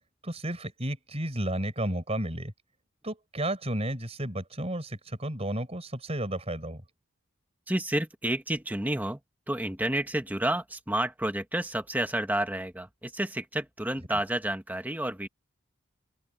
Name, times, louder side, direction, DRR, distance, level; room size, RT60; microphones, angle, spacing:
voice 1, 0.2-2.5 3.0-6.8, right 1 dB, 30° right, 5.0 m, -32 dB
voice 2, 7.7-9.2 9.5-15.3, right 1 dB, 10° right, 1.3 m, -30 dB
open air
head